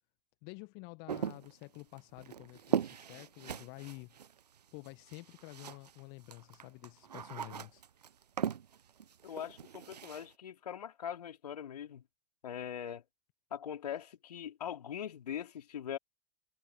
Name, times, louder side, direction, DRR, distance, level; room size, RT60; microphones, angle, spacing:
voice 1, 0.4-4.2 4.7-7.8, left 32 dB, 50° left, 1.6 m, -49 dB
sound 1, 1.1-6.0 6.3-10.3, right 8 dB, 80° right, 0.9 m, -39 dB
voice 2, 9.2-12.0 12.4-13.0 13.5-16.0, left 9 dB, 75° left, 3.7 m, -41 dB
figure-of-eight pair, 85°, 20 cm